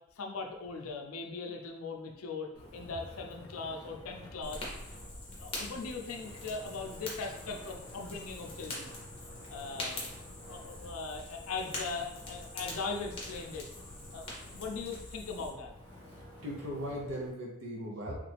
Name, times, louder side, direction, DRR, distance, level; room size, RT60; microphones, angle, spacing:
voice 1, 0.2-4.7 5.4-8.9 9.5-13.7 14.1-15.7, left 4 dB, 75° left, 2 dB, 0.5 m, -40 dB
Wind, 2.5-17.3, left 1 dB, 5° left, 1.1 m, -51 dB
Fire, 4.4-15.5, left 2 dB, 25° left, 0.8 m, -44 dB
voice 2, 16.4-18.1, equal, 55° right, -3 dB, 0.7 m, -38 dB
3.2 x 2.5 x 3.3 m, 0.85 s
head